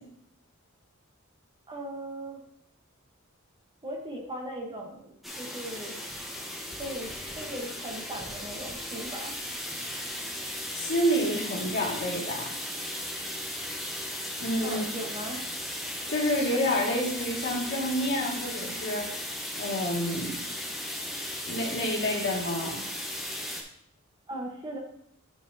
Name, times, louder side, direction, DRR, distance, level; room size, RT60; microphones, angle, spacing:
voice 1, 1.7-2.4 3.8-6.0 6.8-9.3 14.6-15.5 24.3-24.8, right 1 dB, 25° right, 0 dB, 1.1 m, -38 dB
sound 1, 5.2-23.6, left 1 dB, ahead, 1.1 m, -36 dB
voice 2, 10.7-12.5 14.4-14.9 16.1-19.2 19.6-20.4 21.5-22.9, equal, 55° left, -2 dB, 2.0 m, -28 dB
9.8 x 5.5 x 2.8 m, 0.71 s
head